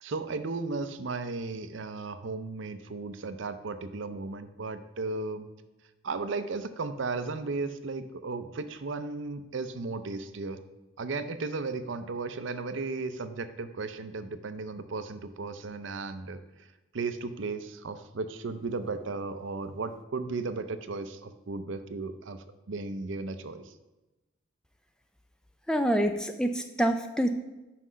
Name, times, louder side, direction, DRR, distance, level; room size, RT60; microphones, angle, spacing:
voice 1, 0.0-5.5 6.0-10.6 11.0-16.4 16.9-22.4 22.7-23.7, right 3 dB, 70° right, 11 dB, 0.5 m, -35 dB
voice 2, 25.7-27.3, right 1 dB, 5° left, 7 dB, 0.3 m, -26 dB
5.8 x 5.5 x 6.2 m, 1.1 s
head